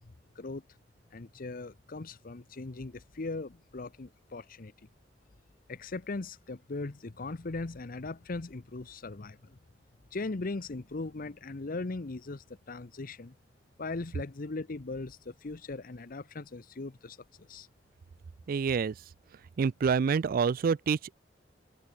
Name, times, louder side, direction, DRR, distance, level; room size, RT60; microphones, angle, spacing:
voice 1, 1.1-4.7 5.7-9.6 10.1-13.4 13.8-17.7, left 3 dB, 50° left, 0.8 m, -39 dB
voice 2, 18.5-18.9 19.6-21.1, right 6 dB, 50° right, 0.3 m, -27 dB
head